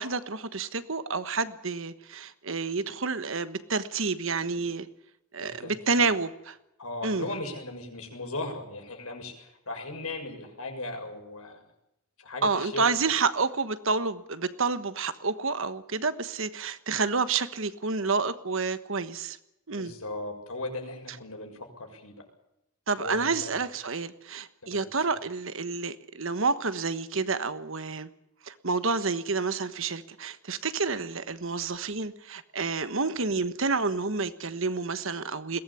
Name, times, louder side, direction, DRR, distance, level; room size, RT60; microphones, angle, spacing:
voice 1, 0.0-4.9 5.3-6.6 7.0-7.3 12.4-19.4 19.7-19.9 22.9-28.1 28.4-35.6, right 4 dB, 60° right, 12 dB, 1.3 m, -29 dB
voice 2, 5.4-6.1 6.8-11.6 12.2-12.8 19.7-22.1 23.0-23.6 24.6-25.2, left 2 dB, 80° left, 3 dB, 6.6 m, -38 dB
22.0 x 18.0 x 8.5 m, 0.84 s
head